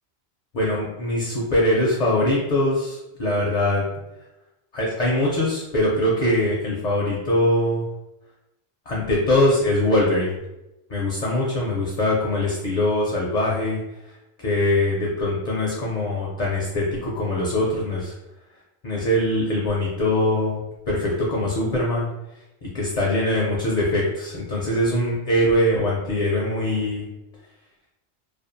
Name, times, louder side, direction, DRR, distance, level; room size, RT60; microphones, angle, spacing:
voice 1, 0.5-3.8 4.7-7.8 8.9-10.3 10.9-13.8 14.4-18.1 18.8-20.6 20.9-22.1 22.6-27.1, left 1 dB, 55° left, -4 dB, 0.5 m, -22 dB
2.5 x 2.3 x 2.5 m, 0.95 s
omnidirectional pair, 1.1 m